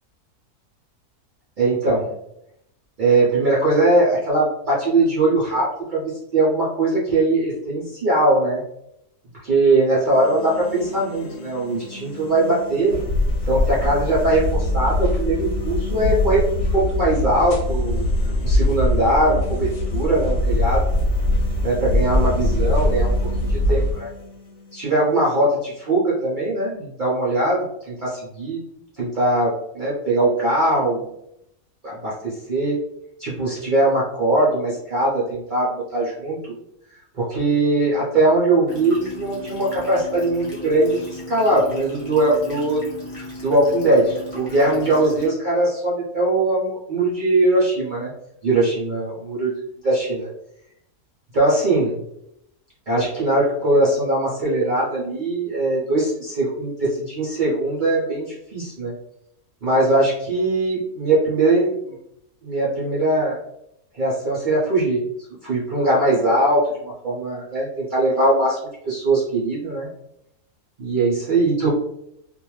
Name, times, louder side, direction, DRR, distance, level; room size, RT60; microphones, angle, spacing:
voice 1, 1.6-2.1 3.0-8.6 9.4-13.0 13.4-16.4 16.7-18.1 18.4-20.8 21.6-23.1 23.5-24.1 24.7-28.6 29.0-31.1 31.8-32.8 33.2-36.6 37.2-42.9 43.4-48.1 48.4-49.5 49.8-50.3 51.3-52.0 52.9-58.9 59.6-61.9 62.4-63.4 63.9-65.0 65.4-68.6 68.9-69.9 70.8-71.7, right 2 dB, 75° right, -6 dB, 0.4 m, -20 dB
sound 1, 9.8-25.8, left 2 dB, 90° left, 1.1 m, -39 dB
sound 2, 12.9-23.9, left 1 dB, 65° left, 0.9 m, -22 dB
sound 3, 38.7-45.3, left 1 dB, 35° left, 0.6 m, -36 dB
2.5 x 2.2 x 3.0 m, 0.79 s
omnidirectional pair, 1.7 m